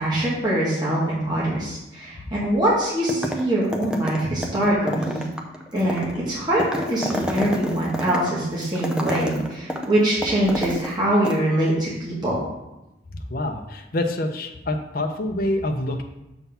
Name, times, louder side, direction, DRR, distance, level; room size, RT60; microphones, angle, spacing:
voice 1, 0.0-5.2 5.7-12.4, right 1 dB, 25° right, -7 dB, 1.9 m, -23 dB
sound 1, 3.1-3.5 3.7-11.0 11.2-11.4, equal, 5° right, 0.6 m, -29 dB
voice 2, 13.3-16.0, left 1 dB, 50° left, 4 dB, 0.6 m, -26 dB
7.0 x 3.7 x 5.6 m, 0.95 s
head